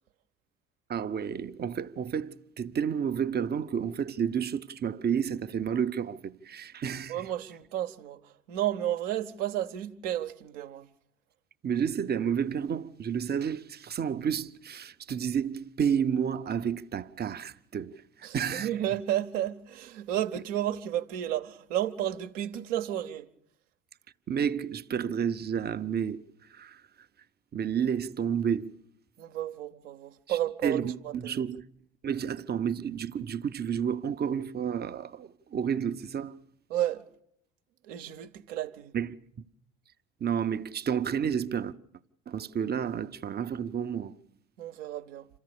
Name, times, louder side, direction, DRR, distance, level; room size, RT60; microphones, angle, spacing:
voice 1, 0.9-7.2 11.6-18.7 24.3-26.8 27.5-28.8 30.3-31.6 32.0-36.4 38.9-39.4 40.2-41.7 42.3-44.2, right 8 dB, 25° right, 0.7 m, -31 dB
voice 2, 7.1-10.9 18.2-23.3 29.2-31.5 36.7-37.1 37.9-38.9 44.6-45.3, right 12 dB, 65° right, 1.0 m, -32 dB
27.0 x 14.5 x 6.6 m
figure-of-eight pair, 60°, 39 cm